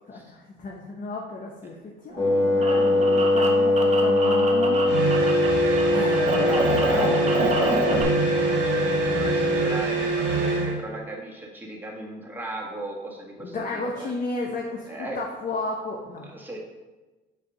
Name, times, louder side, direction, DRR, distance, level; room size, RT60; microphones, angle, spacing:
voice 1, 0.1-4.9 5.9-7.5 13.4-16.3, left 3 dB, 45° left, -1 dB, 0.9 m, -33 dB
sound 1, 2.1-5.5 5.7-8.0, right 1 dB, 35° right, 1.1 m, -28 dB
Wind instrument woodwind instrument, 2.2-9.8, left 2 dB, 25° left, 1.5 m, -22 dB
sound 2, 4.9-10.8, right 3 dB, 60° right, 1.5 m, -25 dB
voice 2, 6.4-7.2 7.7-14.1 14.9-15.2 16.3-16.6, right 1 dB, 10° right, -1 dB, 1.4 m, -36 dB
7.3 x 2.8 x 5.4 m, 1.2 s
cardioid pair, 90°, 20 cm